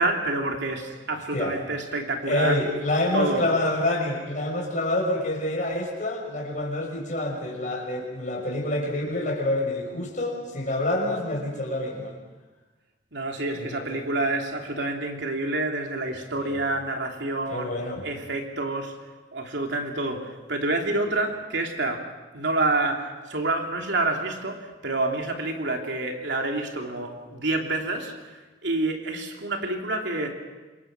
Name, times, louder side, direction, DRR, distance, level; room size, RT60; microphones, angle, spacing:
voice 1, 0.0-2.6 3.1-3.4 13.1-17.7 18.0-18.9 19.3-22.0 22.3-28.1 28.6-30.3, right 2 dB, 70° right, 2 dB, 3.2 m, -28 dB
voice 2, 2.3-12.1 13.5-14.0 16.4-16.6 17.5-18.1, left 1 dB, 40° left, 0 dB, 6.0 m, -27 dB
27.5 x 22.0 x 6.2 m, 1.2 s
head